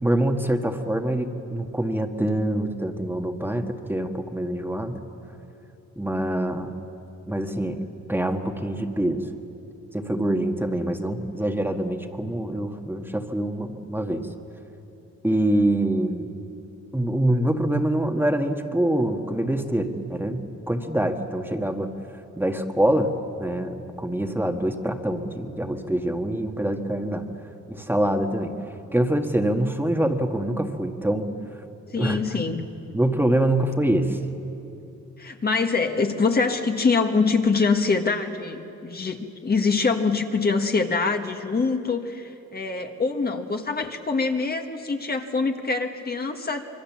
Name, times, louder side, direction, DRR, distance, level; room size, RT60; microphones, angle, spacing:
voice 1, 0.0-5.0 6.0-6.7 7.3-9.2 9.9-14.3 15.2-16.3 16.9-21.9 22.3-23.1 23.4-27.2 27.7-28.5 28.9-31.3 32.0-32.2 32.9-34.2, right 1 dB, 5° right, 4 dB, 1.6 m, -25 dB
voice 2, 31.9-32.7 35.2-46.7, left 4 dB, 30° left, 4 dB, 1.7 m, -24 dB
26.0 x 23.0 x 7.4 m, 2.8 s
cardioid pair, 90°, 30 cm